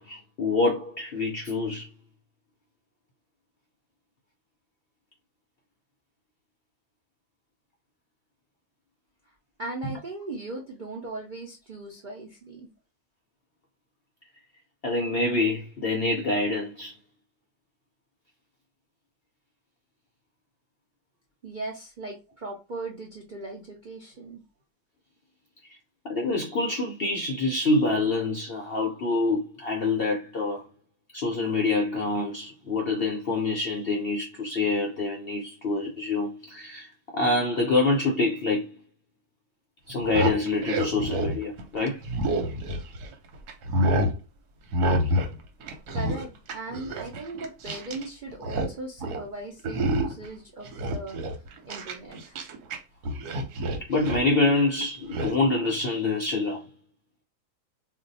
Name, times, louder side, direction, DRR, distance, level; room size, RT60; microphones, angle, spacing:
voice 1, 0.0-1.9 14.8-16.9 26.0-30.6 31.1-36.9 37.1-38.7 39.9-42.0 53.9-56.6, left 3 dB, 65° left, 0.5 m, -26 dB
voice 2, 9.6-12.7 21.4-24.4 45.9-52.4, right 2 dB, 60° right, 0.5 m, -38 dB
sound 1, 39.9-43.1 43.5-44.2 44.7-45.3 45.6-48.1 48.3-48.7 49.0-49.3 49.6-50.3 50.6-52.8 53.0-54.3 55.1-55.3, right 1 dB, 85° right, 1.2 m, -28 dB
2.5 x 2.2 x 3.9 m
omnidirectional pair, 1.6 m